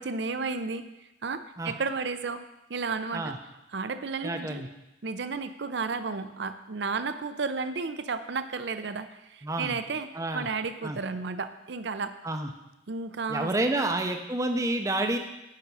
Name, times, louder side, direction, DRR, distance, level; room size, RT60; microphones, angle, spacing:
voice 1, 0.0-2.4 2.7-3.4 3.7-4.7 5.0-10.1 10.3-12.2 12.9-13.9, right 4 dB, 60° right, 11 dB, 0.5 m, -33 dB
voice 2, 4.2-4.7 9.4-9.8 10.1-10.5 10.8-11.0 12.2-12.5 13.3-15.2, right 2 dB, 15° right, 5 dB, 0.5 m, -29 dB
8.9 x 5.5 x 5.4 m, 0.95 s
head